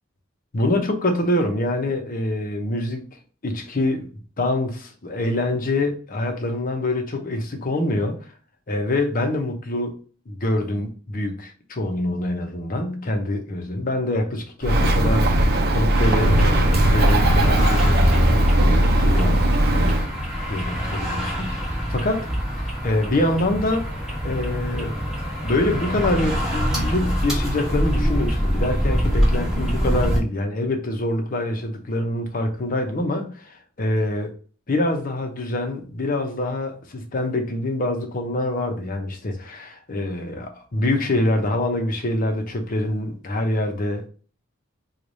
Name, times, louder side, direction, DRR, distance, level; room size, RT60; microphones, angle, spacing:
voice 1, 0.5-3.0 3.4-4.1 4.4-8.2 8.7-9.9 10.3-19.4 19.7-20.2 20.5-22.3 22.6-23.9 24.2-25.1 25.4-34.3 34.7-44.1, left 1 dB, 45° left, 0.8 m, -25 dB
Bird, 14.6-20.1, right 1 dB, 55° right, 0.6 m, -18 dB
sound 1, 15.9-30.2, equal, ahead, 1.2 m, -25 dB
3.2 x 2.4 x 4.0 m
head